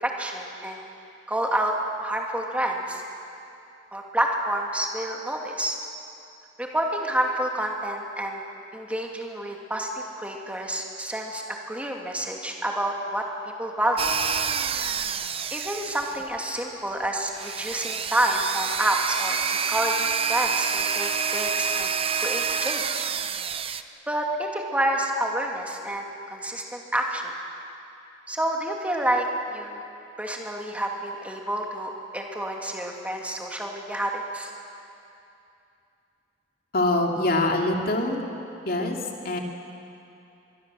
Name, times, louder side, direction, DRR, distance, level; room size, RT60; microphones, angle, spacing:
voice 1, 0.0-0.8 1.3-1.7 2.0-3.0 3.9-5.8 6.6-8.4 8.7-13.2 13.6-14.1 14.7-14.9 15.5-21.9 22.2-23.1 24.1-27.2 28.3-29.8 30.2-34.5, right 1 dB, 10° right, 0 dB, 2.5 m, -28 dB
sound 1, 14.0-16.4 17.3-23.8, right 6 dB, 30° right, 0.7 m, -28 dB
voice 2, 36.7-38.3 38.6-39.0 39.2-39.4, left 2 dB, 55° left, 1 dB, 2.7 m, -24 dB
24.0 x 22.5 x 7.7 m, 2.7 s
head